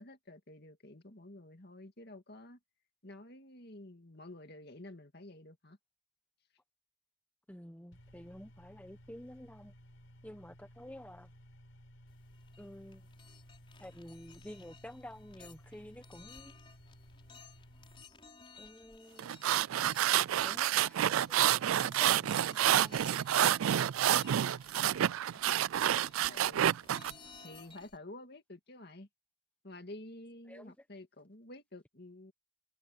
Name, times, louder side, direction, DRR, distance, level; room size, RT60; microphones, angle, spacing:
voice 1, 0.0-2.6 3.0-5.8 25.3-25.5 25.9-26.8 27.4-29.1 29.6-32.3, left 1 dB, 50° left, 2.2 m, -50 dB
voice 2, 7.5-9.7 10.2-11.3 12.6-13.0 13.8-16.5 18.6-19.4 20.4-23.2 30.5-30.7, equal, 5° left, 1.1 m, -50 dB
sound 1, 7.9-18.0, equal, 65° left, 6.1 m, -57 dB
sound 2, 12.1-28.0, left 5 dB, 25° left, 6.5 m, -58 dB
sound 3, 19.2-27.1, right 11 dB, 80° right, 0.3 m, -28 dB
head